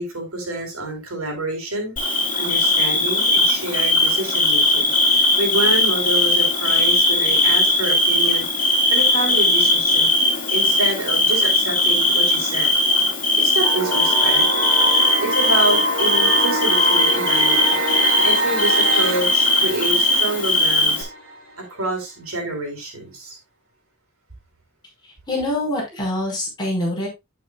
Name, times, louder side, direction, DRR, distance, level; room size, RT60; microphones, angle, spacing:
voice 1, 0.0-1.9 2.4-8.4 8.9-10.1 10.5-12.7 13.4-14.4 15.2-17.8 18.2-21.1 21.7-23.4, right 2 dB, 85° right, 4.2 m, -27 dB
Bird / Cricket, 2.0-21.0, left 2 dB, 40° left, 3.7 m, -19 dB
sound 1, 13.6-21.6, right 1 dB, 65° right, 2.3 m, -25 dB
voice 2, 25.0-27.1, left 1 dB, 20° left, 5.3 m, -25 dB
9.2 x 8.9 x 2.4 m
head